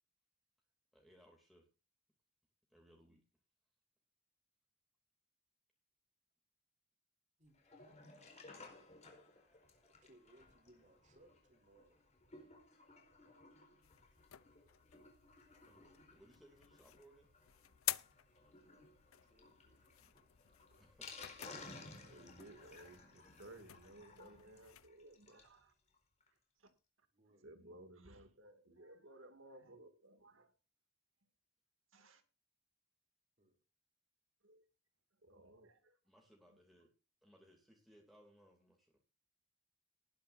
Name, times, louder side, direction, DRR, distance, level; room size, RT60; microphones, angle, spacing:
voice 1, 0.9-1.7 2.7-3.2 15.7-17.3 20.8-21.3 36.0-36.9 37.2-39.0, equal, ahead, 2.9 m, -65 dB
Sink (filling or washing), 7.5-25.6 25.9-26.0 26.2-26.3 26.7-26.8, left 3 dB, 35° left, 4.6 m, -58 dB
voice 2, 9.9-12.1 18.6-20.3 21.9-22.3 27.1-27.5 33.4-33.6, right 1 dB, 35° right, 3.6 m, -68 dB
sound 1, 13.8-24.9, left 15 dB, 90° left, 0.6 m, -50 dB
voice 3, 21.8-25.7 26.6-26.7 27.4-30.5 31.9-32.2 34.4-34.6 35.2-36.0, right 1 dB, 65° right, 2.5 m, -59 dB
19.0 x 10.5 x 2.7 m
head